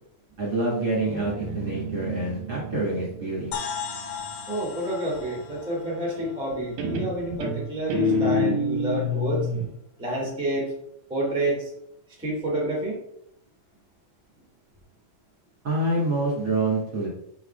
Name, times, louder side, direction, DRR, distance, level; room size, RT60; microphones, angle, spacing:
voice 1, 0.4-3.5 15.6-17.1, right 2 dB, 35° right, -6 dB, 2.1 m, -26 dB
Guitar, 1.1-4.6 6.1-6.5 6.8-9.7, left 2 dB, 65° right, 1.9 m, -28 dB
sound 1, 3.5-7.3, left 6 dB, 80° left, 2.4 m, -37 dB
voice 2, 4.5-9.5 10.0-10.7 11.1-11.7 12.2-13.0, right 1 dB, ahead, -3 dB, 1.1 m, -29 dB
6.1 x 5.6 x 3.4 m, 0.73 s
omnidirectional pair, 4.0 m